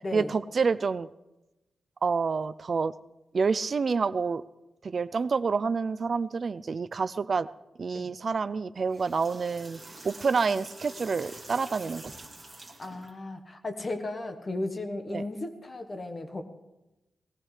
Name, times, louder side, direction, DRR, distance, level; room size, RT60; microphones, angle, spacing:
voice 1, 0.1-1.1 2.0-2.9 3.3-4.4 4.8-7.5 7.8-9.8 10.0-12.1 15.1-15.2, right 5 dB, 40° right, 15 dB, 0.4 m, -28 dB
sound 1, 8.8-13.1, right 2 dB, 15° right, 2.4 m, -46 dB
voice 2, 12.8-16.4, left 2 dB, 25° left, 6 dB, 1.2 m, -35 dB
20.5 x 15.0 x 3.3 m, 0.99 s
wide cardioid pair, 165°, 0 cm